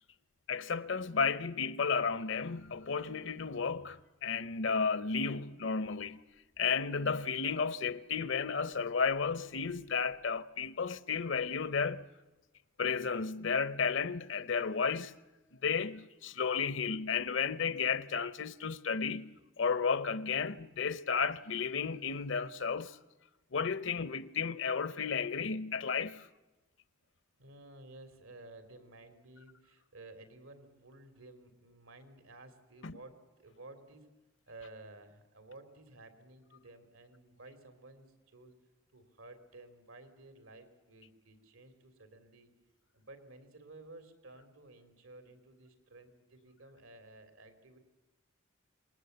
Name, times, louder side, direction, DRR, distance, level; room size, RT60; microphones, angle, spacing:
voice 1, 0.5-6.2 6.6-12.1 12.8-15.1 15.6-23.0 23.5-26.3 32.8-33.0, left 5 dB, 60° left, 0.8 m, -33 dB
voice 2, 27.3-34.1 34.5-38.5 38.9-42.5 42.9-47.8, right 2 dB, 85° right, 3.4 m, -54 dB
26.5 x 20.5 x 8.1 m
head